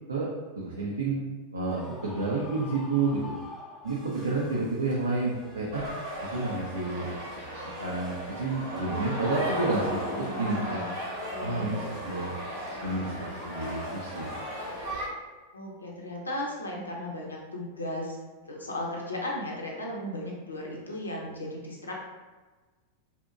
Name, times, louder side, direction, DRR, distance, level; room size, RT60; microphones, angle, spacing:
voice 1, 0.6-1.3 1.5-3.3 3.8-5.8 6.2-7.1 7.6-10.8 11.4-12.3 12.8-14.3, right 3 dB, 75° right, -4 dB, 0.3 m, -30 dB
Screaming, 1.7-4.4, left 2 dB, 10° left, 0.3 m, -46 dB
sound 1, 3.8-15.1, right 1 dB, 10° right, 0.7 m, -49 dB
sound 2, 5.7-15.0, equal, 55° right, 0.7 m, -35 dB
voice 2, 10.1-10.9 11.3-12.0 15.5-18.2 18.4-22.0, left 1 dB, 75° left, -2 dB, 0.5 m, -36 dB
2.6 x 2.1 x 2.4 m, 1.3 s
figure-of-eight pair, 90°, 0 cm